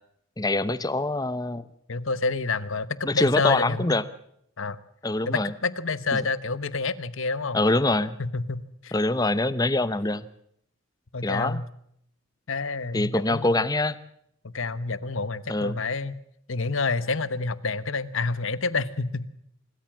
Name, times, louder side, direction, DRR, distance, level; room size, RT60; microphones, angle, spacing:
voice 1, 0.4-1.7 3.0-4.0 5.0-5.5 6.1-6.3 7.5-8.2 8.9-10.3 11.2-11.6 12.9-14.0 15.5-15.8, left 2 dB, 15° left, 15 dB, 0.8 m, -24 dB
voice 2, 1.9-4.0 4.6-4.8 5.3-7.6 8.2-8.9 11.1-11.7 12.5-13.6 14.4-16.2 16.5-19.3, left 3 dB, 65° left, 16 dB, 1.0 m, -28 dB
26.0 x 14.0 x 7.5 m, 0.71 s
head